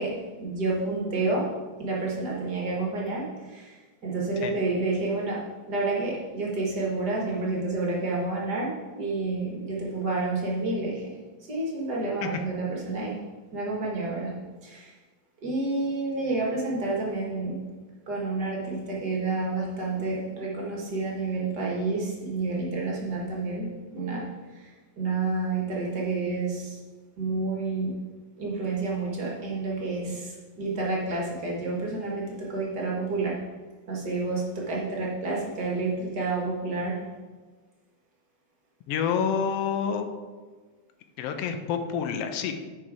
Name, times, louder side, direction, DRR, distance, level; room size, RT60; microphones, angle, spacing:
voice 1, 0.0-11.2 11.5-14.9 15.4-17.7 18.1-26.8 27.2-28.0 28.4-33.5 33.9-37.1, right 3 dB, 45° right, -3 dB, 1.5 m, -30 dB
voice 2, 38.9-40.1 41.2-42.6, left 7 dB, 75° left, 6 dB, 1.4 m, -28 dB
10.0 x 4.6 x 4.8 m, 1.3 s
omnidirectional pair, 3.6 m